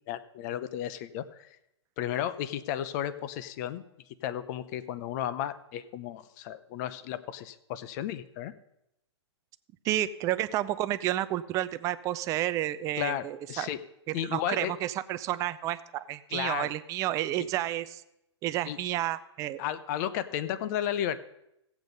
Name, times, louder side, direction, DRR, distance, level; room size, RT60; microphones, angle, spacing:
voice 1, 0.1-1.5 2.0-3.8 4.2-8.5 13.0-13.8 14.1-14.7 16.3-16.7 17.4-17.5 18.7-18.8 19.6-21.2, left 11 dB, 35° left, 14 dB, 0.7 m, -33 dB
voice 2, 9.8-13.7 14.1-18.0 18.4-19.6, right 14 dB, 20° right, 13 dB, 0.4 m, -31 dB
15.5 x 8.2 x 5.3 m, 0.84 s
hypercardioid pair, 140°, 15 cm